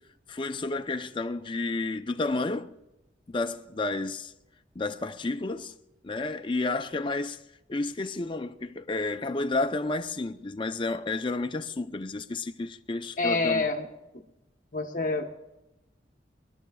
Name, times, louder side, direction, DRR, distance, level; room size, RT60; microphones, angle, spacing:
voice 1, 0.3-2.7 3.3-4.3 4.7-5.7 6.0-7.4 7.7-13.7, left 3 dB, 25° left, 0.5 m, -31 dB
voice 2, 13.2-13.8 14.7-15.3, left 3 dB, 45° left, 1.0 m, -27 dB
24.0 x 12.5 x 2.3 m
head